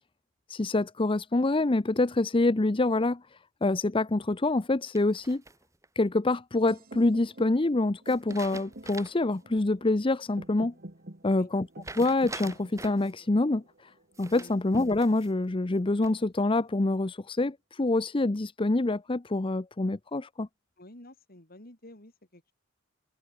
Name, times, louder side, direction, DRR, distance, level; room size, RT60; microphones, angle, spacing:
voice 1, 0.5-5.4 6.0-10.7 11.2-11.7 12.0-13.9 14.2-20.5, left 2 dB, 25° left, 0.6 m, -26 dB
sound 1, 4.9-5.9 8.1-9.3 9.7-9.8 11.8-13.1 14.1-15.3 15.8-16.4, right 3 dB, 15° right, 2.0 m, -45 dB
sound 2, 6.7-14.6, right 1 dB, 50° right, 2.5 m, -48 dB
voice 2, 20.8-22.5, left 1 dB, 50° left, 4.9 m, -50 dB
head